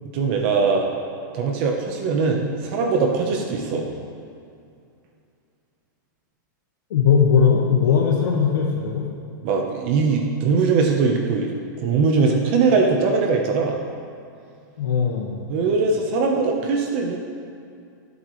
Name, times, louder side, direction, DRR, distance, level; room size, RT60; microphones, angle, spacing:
voice 1, 0.1-0.9 1.3-3.9 9.4-11.5 11.8-13.8 15.5-17.2, right 4 dB, 35° right, 2 dB, 1.0 m, -21 dB
voice 2, 6.9-9.0 14.8-15.3, left 7 dB, 80° left, -3 dB, 1.6 m, -19 dB
24.0 x 8.3 x 3.2 m, 2.4 s
supercardioid pair, 180°, 11 cm